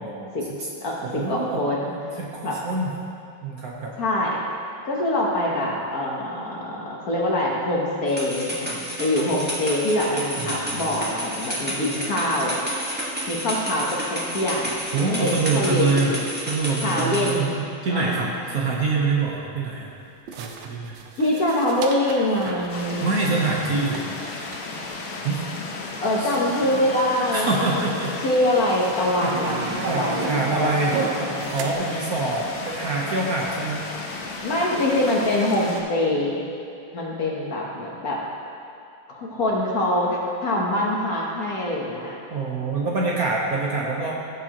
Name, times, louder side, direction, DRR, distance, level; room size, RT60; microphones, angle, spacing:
voice 1, 0.0-0.7 1.0-1.6 2.2-2.9 3.4-3.9 10.4-10.8 14.9-16.1 16.5-19.9 20.4-21.0 23.0-24.0 25.2-25.4 26.2-26.3 27.3-28.2 29.0-29.3 29.7-33.8 42.3-44.1, right 3 dB, 55° right, -3 dB, 1.3 m, -25 dB
voice 2, 0.8-1.9 2.4-2.6 4.0-4.4 4.8-12.5 13.3-14.8 15.2-16.2 16.8-17.5 17.9-18.3 21.2-23.2 26.0-27.9 28.2-31.5 34.4-36.4 36.9-38.2 39.1-42.2, left 1 dB, 50° left, -3 dB, 1.5 m, -24 dB
sound 1, 8.1-17.3, equal, 5° right, 1.2 m, -30 dB
sound 2, 19.1-19.2 20.3-25.5 26.0-26.1 26.3-26.8 27.6-27.7 28.6-28.7 29.0-31.7, right 6 dB, 70° right, 1.3 m, -35 dB
sound 3, 22.7-35.8, left 3 dB, 80° left, 1.8 m, -34 dB
15.5 x 7.0 x 3.0 m, 2.5 s
omnidirectional pair, 2.2 m